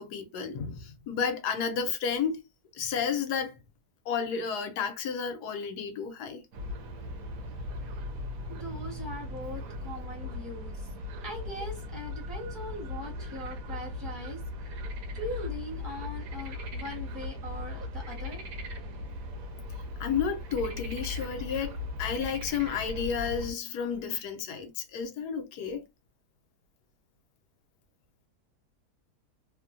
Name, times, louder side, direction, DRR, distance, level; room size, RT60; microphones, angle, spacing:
voice 1, 0.0-2.4 2.7-3.6 4.1-6.4 18.2-18.3 20.0-25.8, left 6 dB, 75° left, 1.2 m, -32 dB
sound 1, 6.5-23.5, left 2 dB, 65° right, 1.0 m, -38 dB
voice 2, 8.5-10.8 11.2-14.4 15.1-18.4, left 1 dB, 5° right, 0.7 m, -40 dB
3.0 x 2.2 x 2.4 m
omnidirectional pair, 1.8 m